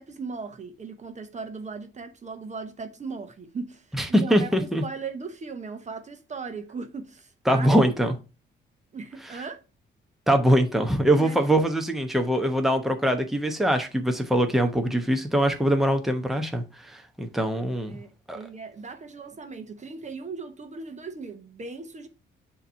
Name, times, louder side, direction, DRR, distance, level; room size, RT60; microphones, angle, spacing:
voice 1, 0.0-7.7 8.9-9.6 11.1-11.4 17.9-22.1, right 4 dB, 35° right, 1.0 m, -38 dB
voice 2, 4.0-4.8 7.5-8.1 9.2-9.4 10.3-17.9 18.3-18.4, equal, ahead, 0.9 m, -23 dB
6.6 x 3.0 x 5.5 m
cardioid pair, 90°, 20 cm